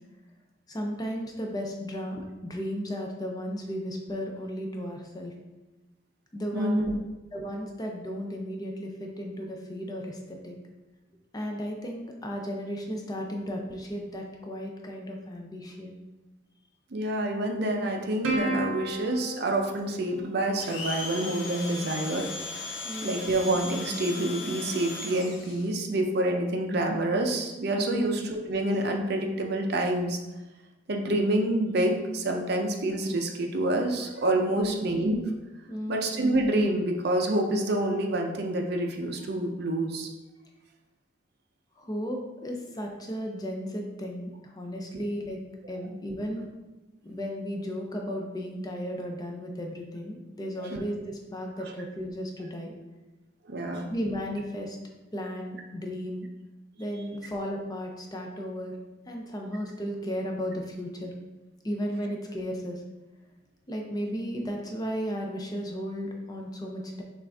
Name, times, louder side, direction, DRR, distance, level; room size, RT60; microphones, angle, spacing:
voice 1, 0.7-5.3 6.3-6.9 7.3-10.5 11.3-15.9 22.8-23.1 27.9-28.1 34.5-34.8 35.7-36.0 41.8-45.4 45.7-46.5 47.0-52.7 53.9-54.8 55.1-56.3 56.8-58.8 59.1-61.1 61.6-62.8 63.7-67.0, equal, 20° left, 1 dB, 0.5 m, -34 dB
voice 2, 6.5-6.9 16.9-30.2 30.9-35.2 35.9-40.1 45.8-45.9 50.6-50.8 51.6-51.7 53.4-53.9, right 1 dB, 55° right, 3 dB, 0.5 m, -27 dB
Plucked string instrument, 18.2-21.0, right 1 dB, 85° right, 0.9 m, -33 dB
Domestic sounds home sounds, 20.6-25.7, left 3 dB, 65° left, 0.7 m, -37 dB
5.9 x 2.5 x 3.4 m, 1.1 s
head